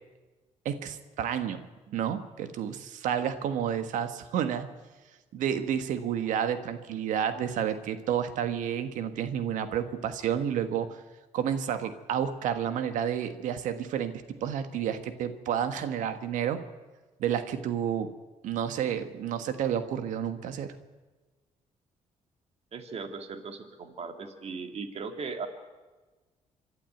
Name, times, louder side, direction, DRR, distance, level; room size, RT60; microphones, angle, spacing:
voice 1, 0.6-1.6 1.9-4.7 5.3-11.0 11.3-14.1 14.4-16.6 17.2-18.1 18.4-20.7, right 9 dB, 85° right, 10 dB, 1.4 m, -30 dB
voice 2, 22.7-25.5, right 4 dB, 55° right, 7 dB, 2.3 m, -38 dB
26.0 x 11.5 x 9.2 m, 1.3 s
cardioid pair, 85°, 13 cm